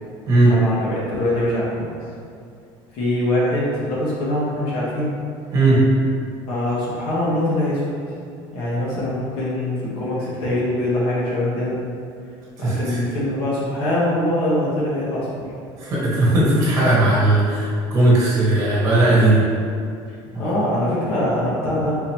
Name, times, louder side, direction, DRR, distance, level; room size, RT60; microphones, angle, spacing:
voice 1, 0.5-1.9 2.9-5.1 6.5-7.9 8.5-11.8 12.6-15.4 20.4-22.0, left 1 dB, 55° left, -6 dB, 1.2 m, -23 dB
voice 2, 12.6-13.0 15.8-19.4 20.3-20.5, right 2 dB, 35° right, -7 dB, 1.2 m, -17 dB
3.9 x 2.9 x 2.8 m, 2.4 s
cardioid pair, 150°, 10 cm